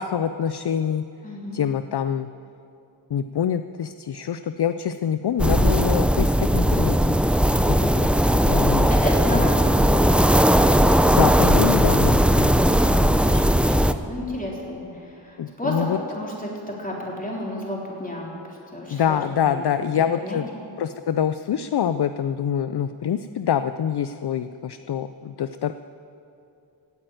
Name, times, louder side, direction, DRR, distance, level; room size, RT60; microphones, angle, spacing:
voice 1, 0.0-1.0 1.5-2.3 3.1-7.2 7.5-8.1 8.4-8.9 9.3-9.4 11.0-12.8 15.4-16.0 18.9-20.5 20.8-25.7, left 8 dB, 60° left, 11 dB, 0.5 m, -25 dB
voice 2, 1.2-1.6 8.4-10.1 12.5-19.9 20.2-20.4, left 1 dB, 15° left, -3 dB, 3.7 m, -32 dB
sound 1, 5.4-13.9, equal, 5° right, 0.4 m, -18 dB
16.5 x 8.9 x 9.2 m, 2.7 s
wide cardioid pair, 85°, 46 cm